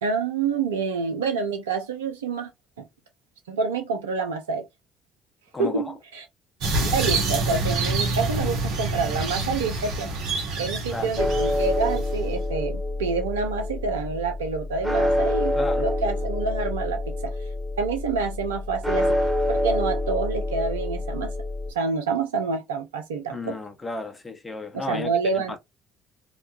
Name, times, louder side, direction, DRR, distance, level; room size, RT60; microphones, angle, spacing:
voice 1, 0.0-2.5 2.8-2.9 3.5-4.7 5.6-6.2 6.8-10.1 10.6-17.3 17.8-19.2 19.5-21.3 21.7-23.6 24.7-25.6, right 4 dB, 85° right, 0.4 m, -27 dB
voice 2, 5.5-5.9 10.9-11.1 15.6-15.9 23.3-25.1 25.3-25.6, left 3 dB, 20° left, 0.8 m, -33 dB
sound 1, 6.6-12.4, right 3 dB, 70° right, 0.8 m, -27 dB
sound 2, 11.2-21.7, left 1 dB, 5° right, 1.1 m, -26 dB
2.9 x 2.2 x 2.5 m
hypercardioid pair, 55°, 0 cm